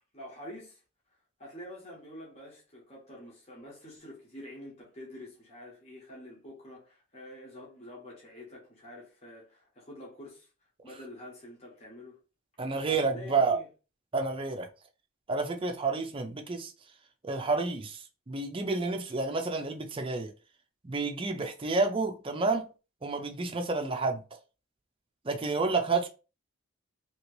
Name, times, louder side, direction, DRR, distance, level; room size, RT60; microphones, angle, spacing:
voice 1, 0.1-0.8 1.4-10.5 10.8-12.2 12.8-13.7, left 1 dB, 30° left, 1.1 m, -47 dB
voice 2, 12.6-13.6 14.1-14.7 15.3-16.7 17.2-20.3 20.8-22.7 23.0-24.2 25.3-26.1, right 3 dB, 25° right, 0.5 m, -30 dB
2.9 x 2.8 x 3.0 m
head